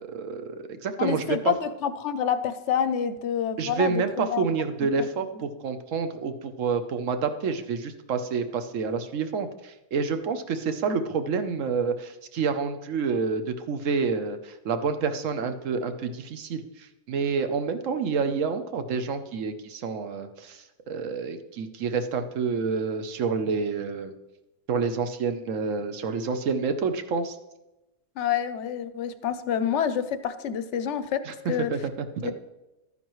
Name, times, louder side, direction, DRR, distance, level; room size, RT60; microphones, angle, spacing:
voice 1, 0.0-1.5 3.6-16.6 17.1-24.1 24.7-27.4 31.3-32.3, right 5 dB, 65° right, 9 dB, 1.1 m, -28 dB
voice 2, 1.0-4.5 28.2-31.2 31.5-31.7 32.2-32.3, left 8 dB, 60° left, 12 dB, 0.8 m, -27 dB
12.5 x 9.5 x 3.1 m, 0.99 s
omnidirectional pair, 1.6 m